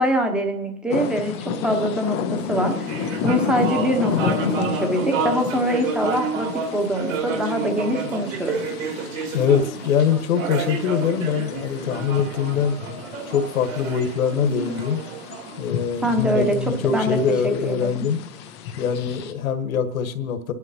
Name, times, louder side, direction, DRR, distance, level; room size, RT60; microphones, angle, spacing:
voice 1, 0.0-1.4 1.6-8.5 16.0-16.6 16.9-17.2 17.6-18.0, equal, ahead, 4 dB, 0.9 m, -24 dB
sound 1, 0.9-19.3, left 7 dB, 20° left, 0.4 m, -32 dB
sound 2, 2.5-16.2, right 4 dB, 55° right, 2.9 m, -30 dB
voice 2, 9.3-12.8 13.3-15.0 15.6-18.3 18.8-20.5, left 7 dB, 60° left, 9 dB, 1.4 m, -23 dB
29.5 x 11.0 x 2.8 m, 0.75 s
hypercardioid pair, 135°, 46 cm